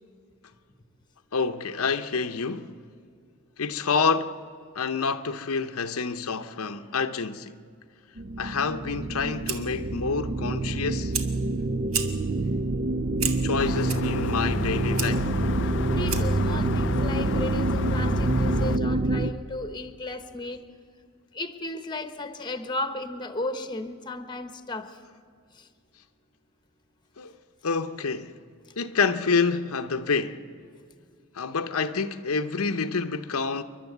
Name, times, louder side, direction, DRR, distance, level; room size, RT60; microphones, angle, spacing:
voice 1, 1.3-2.7 3.6-4.4 4.7-7.6 8.4-11.1 13.4-15.4 27.2-27.3 27.6-28.4 28.8-30.5 31.3-33.6, left 5 dB, 85° left, 0.8 m, -28 dB
sound 1, 8.2-19.3, right 2 dB, 40° right, 0.5 m, -27 dB
Fire, 9.0-16.5, right 7 dB, 70° right, 1.5 m, -36 dB
sound 2, 13.6-18.8, left 7 dB, 55° left, 0.4 m, -32 dB
voice 2, 15.6-20.6 21.3-25.0 25.5-25.7, left 2 dB, 20° left, 1.0 m, -35 dB
28.5 x 11.5 x 8.0 m
head